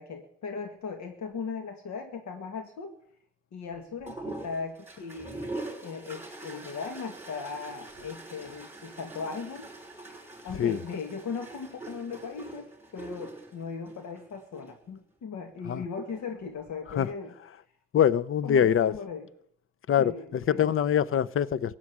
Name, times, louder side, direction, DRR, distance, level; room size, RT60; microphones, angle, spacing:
voice 1, 0.0-3.0 3.5-5.5 5.8-9.7 10.4-17.3 18.4-19.3 20.0-20.6, left 5 dB, 65° left, 2.0 m, -38 dB
sound 1, 4.1-14.7 15.9-16.5, right 2 dB, 5° right, 5.8 m, -43 dB
voice 2, 17.9-18.9 19.9-21.8, left 9 dB, 45° left, 0.7 m, -24 dB
16.0 x 7.5 x 9.5 m
cardioid pair, 90°, 30 cm